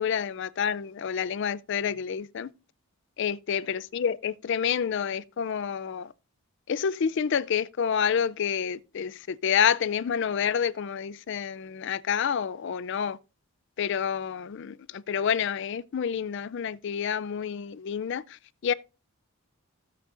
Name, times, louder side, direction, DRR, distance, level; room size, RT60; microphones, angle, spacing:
voice 1, 0.0-2.5 3.2-6.1 6.7-13.2 13.8-18.2 18.6-18.7, left 7 dB, 55° left, 0.4 m, -28 dB
15.5 x 7.8 x 2.5 m
head